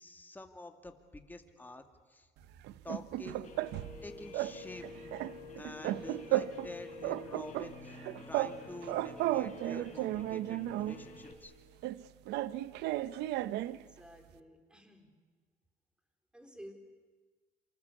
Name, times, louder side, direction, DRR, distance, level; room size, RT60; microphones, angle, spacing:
voice 1, 0.0-2.3 2.8-3.5 4.0-4.9 5.1-5.3 5.6-8.0 8.3-11.5, left 2 dB, 10° left, 6 dB, 2.3 m, -48 dB
sound 1, 2.6-4.0 4.3-4.6 4.8-6.7 7.0-8.6 8.8-11.0 11.8-13.8, right 15 dB, 85° right, 0.8 m, -34 dB
Guitar, 3.4-11.3, left 3 dB, 45° left, 5.5 m, -49 dB
voice 2, 13.6-15.2 16.3-16.7, equal, 5° right, 6 dB, 4.1 m, -53 dB
27.0 x 25.5 x 8.3 m, 1.3 s
cardioid pair, 110°, 17 cm